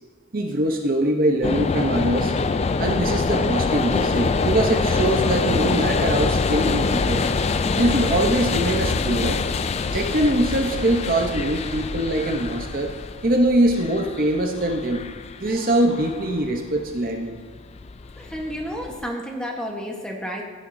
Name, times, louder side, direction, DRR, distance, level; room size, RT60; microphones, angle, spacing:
voice 1, 0.3-2.3 2.8-7.3 7.8-9.5 9.9-12.9 13.2-15.0 15.4-17.4, right 1 dB, 45° right, 2 dB, 0.9 m, -22 dB
sound 1, 1.4-19.0, left 4 dB, 30° left, 0.3 m, -25 dB
voice 2, 18.2-20.4, equal, 5° left, -1 dB, 1.2 m, -31 dB
16.0 x 9.9 x 2.7 m, 1.4 s
head